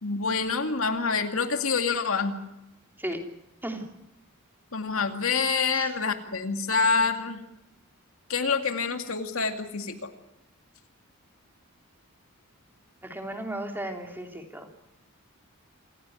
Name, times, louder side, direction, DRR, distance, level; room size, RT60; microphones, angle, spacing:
voice 1, 0.0-2.4 4.7-7.4 8.3-10.1, left 4 dB, 70° left, 6 dB, 2.3 m, -27 dB
voice 2, 13.0-14.7, right 1 dB, 10° right, 3 dB, 3.0 m, -35 dB
27.5 x 15.5 x 9.4 m, 0.90 s
head